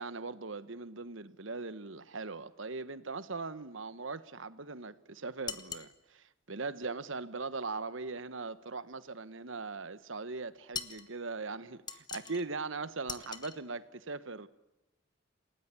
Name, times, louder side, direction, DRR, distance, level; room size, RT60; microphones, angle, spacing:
voice 1, 0.0-14.5, right 3 dB, 70° right, 1.2 m, -40 dB
sound 1, 5.5-5.9 10.7-11.1 11.9-12.4 13.1-13.6, left 6 dB, 20° left, 1.2 m, -41 dB
28.5 x 19.0 x 8.4 m
head